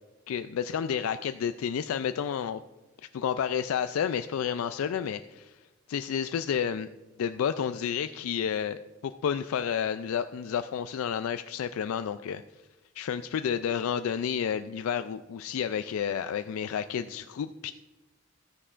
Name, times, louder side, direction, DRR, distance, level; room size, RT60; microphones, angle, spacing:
voice 1, 0.3-2.6 3.1-5.6 5.9-6.9 7.2-12.4 13.0-17.7, left 8 dB, 85° left, 10 dB, 0.3 m, -30 dB
13.5 x 9.9 x 2.5 m, 1.1 s
head